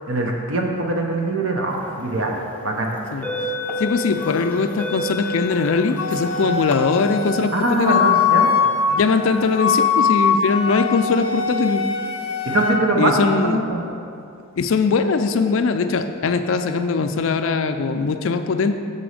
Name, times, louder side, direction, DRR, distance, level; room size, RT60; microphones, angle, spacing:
voice 1, 0.1-2.4 2.6-2.9 7.5-8.5 12.5-13.1 13.4-13.8, right 2 dB, 60° right, 1 dB, 0.7 m, -22 dB
sound 1, 2.0-2.2 2.9-6.7, left 1 dB, 5° left, 0.5 m, -29 dB
voice 2, 3.8-8.0 8.9-11.8 13.0-13.6 14.6-18.7, left 4 dB, 60° left, 8 dB, 0.4 m, -21 dB
Wind instrument woodwind instrument, 6.0-12.8, left 6 dB, 90° left, 0.7 m, -22 dB
6.9 x 4.1 x 6.4 m, 2.6 s
head